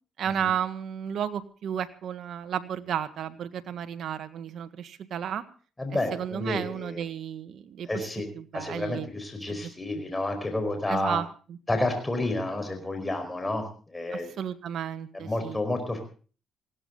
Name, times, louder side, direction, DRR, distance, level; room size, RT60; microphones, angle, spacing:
voice 1, 0.2-5.4 6.1-8.1 8.3-9.1 9.5-9.7 10.9-11.3 14.1-15.6, right 8 dB, 70° right, 11 dB, 1.6 m, -33 dB
voice 2, 5.8-7.0 7.9-8.3 8.5-11.2 11.7-14.3 15.1-16.0, left 2 dB, 15° left, 6 dB, 4.8 m, -30 dB
19.5 x 16.5 x 3.9 m, 0.39 s
cardioid pair, 90°, 0 cm